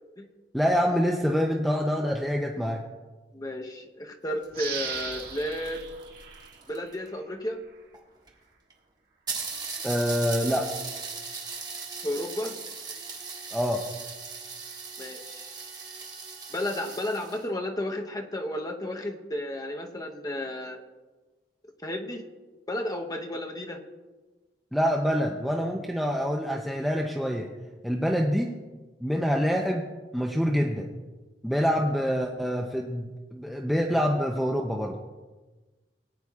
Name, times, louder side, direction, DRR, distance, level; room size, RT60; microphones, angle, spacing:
voice 1, 0.5-2.8 9.8-10.7 13.5-13.8 24.7-27.5 27.8-28.5 29.0-30.9 31.4-35.0, equal, ahead, 0 dB, 0.6 m, -26 dB
voice 2, 3.3-5.8 6.7-7.6 12.0-12.6 15.0-15.5 16.5-20.8 21.8-22.2 22.7-23.8, left 1 dB, 20° left, 3 dB, 0.9 m, -33 dB
sound 1, 4.3-7.1 7.9-8.0 8.3-8.4 8.7-8.8 9.3-17.5, right 5 dB, 25° right, 1.6 m, -38 dB
sound 2, 4.5-7.2 7.7-7.8, right 6 dB, 55° right, 2.0 m, -38 dB
19.0 x 9.6 x 2.4 m, 1.3 s
head